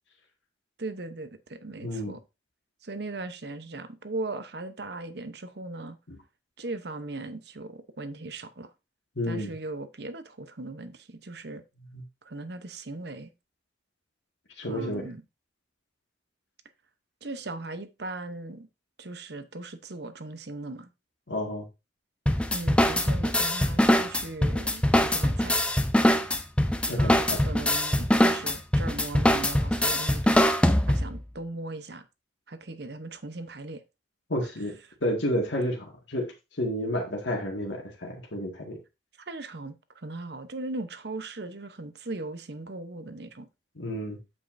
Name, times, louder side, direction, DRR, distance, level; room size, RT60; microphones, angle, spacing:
voice 1, 0.8-2.2 2.8-6.0 6.6-8.7 9.2-11.6 12.2-13.3 14.6-15.2 17.2-18.7 19.0-20.9 22.5-25.6 26.9-30.5 30.9-32.0 32.5-33.8 34.4-34.5 39.2-43.5, right 2 dB, 55° right, 0.9 m, -38 dB
voice 2, 1.8-2.2 6.1-6.2 9.2-9.5 11.9-12.0 14.6-15.1 21.3-21.7 26.9-27.4 34.3-38.8 43.8-44.2, equal, 75° left, 1.9 m, -31 dB
sound 1, 22.3-31.2, left 1 dB, 5° left, 0.5 m, -23 dB
8.5 x 7.5 x 2.6 m
head